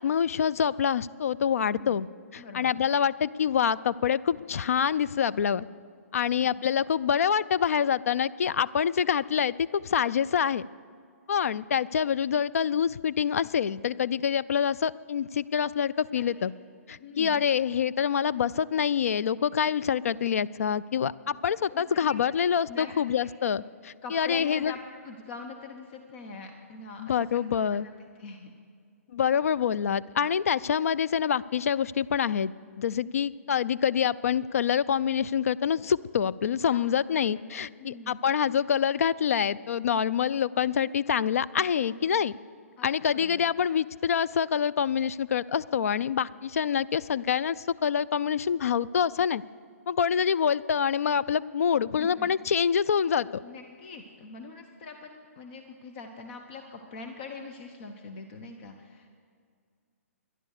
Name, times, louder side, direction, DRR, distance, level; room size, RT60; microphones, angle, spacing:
voice 1, 0.0-2.1 2.3-5.7 6.1-10.6 11.3-16.5 16.9-24.7 27.0-27.9 29.1-32.5 32.8-42.3 42.8-49.4 49.9-53.4, left 8 dB, 75° left, 17 dB, 0.4 m, -26 dB
voice 2, 1.7-2.0 2.4-2.7 6.4-6.5 16.1-16.5 17.0-17.4 21.7-22.2 22.7-23.2 24.0-27.9 28.2-28.5 36.6-37.5 37.8-38.2 41.9-42.1 42.8-43.5 51.8-52.3 53.4-59.1, left 4 dB, 45° left, 4 dB, 1.0 m, -44 dB
12.5 x 11.0 x 6.5 m, 2.1 s
hypercardioid pair, 135°, 8 cm